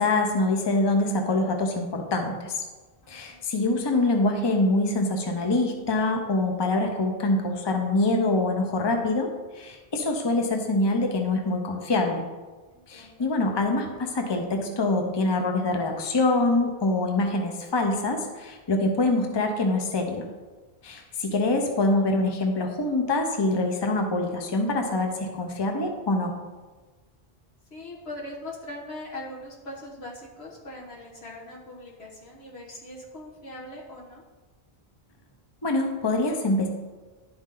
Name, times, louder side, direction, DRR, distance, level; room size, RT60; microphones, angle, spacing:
voice 1, 0.0-2.5 3.1-12.2 12.9-20.3 20.8-26.3 35.6-36.7, left 2 dB, 30° left, 3 dB, 0.7 m, -25 dB
voice 2, 3.0-3.5 12.7-13.3 21.2-21.5 27.7-34.2, left 1 dB, 80° left, -3 dB, 1.9 m, -41 dB
11.5 x 4.2 x 3.8 m, 1.3 s
omnidirectional pair, 1.0 m